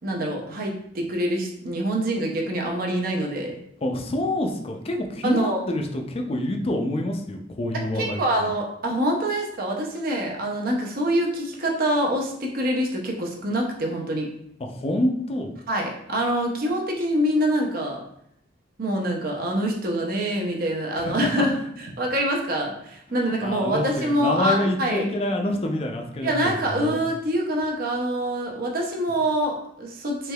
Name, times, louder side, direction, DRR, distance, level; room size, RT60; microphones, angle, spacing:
voice 1, 0.0-3.5 5.2-5.6 7.9-14.3 15.7-18.0 18.8-25.1 26.2-30.3, right 1 dB, 50° right, 0 dB, 0.6 m, -25 dB
voice 2, 3.8-8.5 14.6-15.6 21.0-21.4 23.4-27.0, left 1 dB, 30° left, 3 dB, 0.4 m, -27 dB
3.3 x 3.1 x 2.3 m, 0.73 s
head